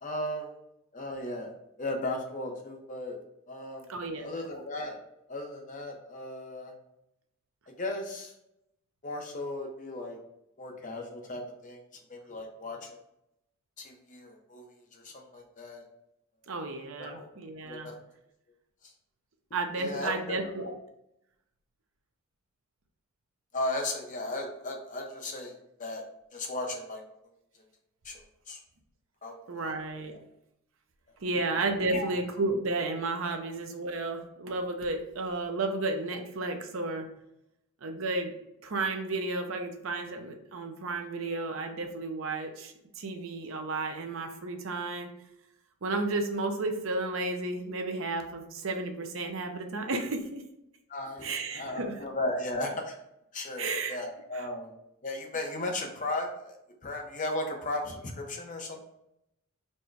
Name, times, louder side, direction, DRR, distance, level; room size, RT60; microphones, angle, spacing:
voice 1, 0.0-0.5 0.9-1.5 1.8-3.2 3.5-3.9 4.2-5.0 5.3-6.7 7.8-8.3 9.0-10.2 10.6-11.8 12.1-13.0 13.8-14.7 14.9-15.8 17.0-17.3 17.6-17.9 19.8-20.7 23.5-25.5 25.8-26.0 26.3-27.0 28.0-28.6 29.2-29.3 29.6-29.7 31.9-32.1 50.9-53.0 53.3-54.7 55.0-56.6 56.8-58.8, left 1 dB, 35° left, 2 dB, 0.7 m, -36 dB
voice 2, 3.9-4.3 16.5-17.9 19.5-20.6 29.5-30.1 31.2-37.1 37.8-38.3 38.6-45.1 45.8-50.4 51.2-52.0 53.6-54.0 54.3-54.5, right 2 dB, 65° right, 5 dB, 0.6 m, -32 dB
4.2 x 2.2 x 4.5 m, 0.82 s
head